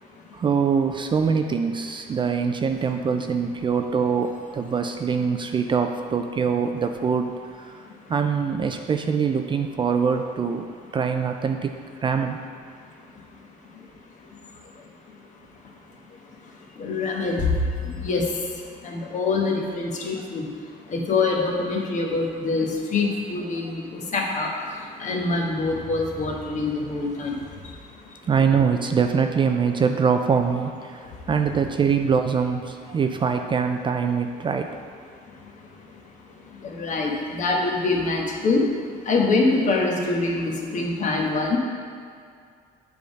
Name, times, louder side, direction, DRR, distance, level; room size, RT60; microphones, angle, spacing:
voice 1, 0.3-7.3 8.1-10.7 10.9-12.4 28.3-31.0 31.3-34.8, right 6 dB, 30° right, 5 dB, 0.3 m, -23 dB
voice 2, 16.8-17.5 17.8-18.2 18.8-20.5 20.9-24.5 25.0-27.4 36.6-38.7 39.1-41.6, left 3 dB, 45° left, 0 dB, 1.1 m, -24 dB
7.5 x 3.5 x 5.2 m, 2.2 s
cardioid pair, 110°, 17 cm